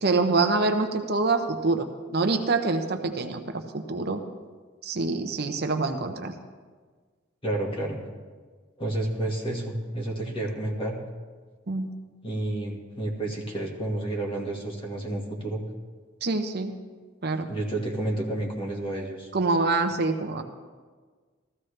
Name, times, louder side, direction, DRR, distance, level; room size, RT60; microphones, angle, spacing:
voice 1, 0.0-4.2 4.8-6.3 11.7-11.9 16.2-16.7 17.2-17.5 19.3-20.4, right 3 dB, 55° right, 6 dB, 0.8 m, -26 dB
voice 2, 7.4-8.0 8.8-11.0 12.2-15.6 17.5-19.3, right 1 dB, 25° left, 0 dB, 1.8 m, -30 dB
14.5 x 14.5 x 3.3 m, 1.5 s
head